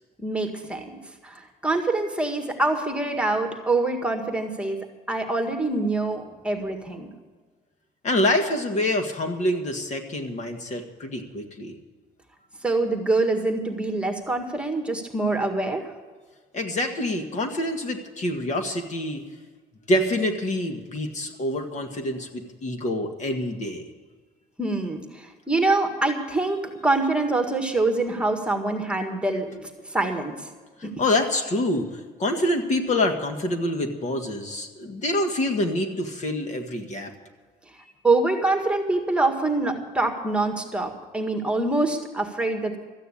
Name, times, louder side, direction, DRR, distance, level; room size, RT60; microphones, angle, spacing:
voice 1, 0.2-0.9 1.2-4.8 5.1-7.1 12.6-15.9 24.6-29.5 29.9-30.4 30.8-30.9 38.0-42.8, right 2 dB, 5° right, 4 dB, 1.8 m, -25 dB
voice 2, 8.0-11.8 16.5-19.2 19.9-23.9 29.5-29.6 31.0-37.1, left 1 dB, 45° left, 5 dB, 1.9 m, -26 dB
14.0 x 9.2 x 8.6 m, 1.4 s
cardioid pair, 110°, 17 cm